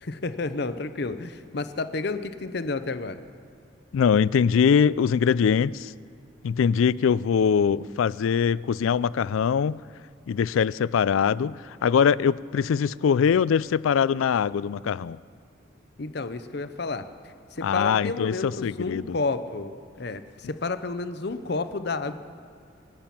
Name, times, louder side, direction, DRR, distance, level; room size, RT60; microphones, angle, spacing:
voice 1, 0.0-3.2 16.0-22.1, left 3 dB, 55° left, 11 dB, 0.7 m, -31 dB
voice 2, 3.9-5.9 6.4-9.8 10.3-15.2 17.6-19.2, left 7 dB, 80° left, 20 dB, 0.3 m, -22 dB
25.5 x 8.7 x 5.9 m, 2.3 s
head